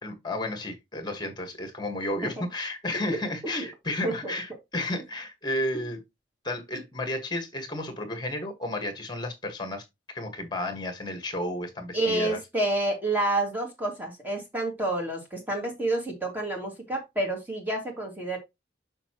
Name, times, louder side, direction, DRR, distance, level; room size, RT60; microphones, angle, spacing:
voice 1, 0.0-6.0 6.4-12.4, left 1 dB, 25° left, 1.6 m, -32 dB
voice 2, 11.9-18.4, right 2 dB, 10° right, 2.1 m, -29 dB
6.8 x 5.5 x 3.0 m
head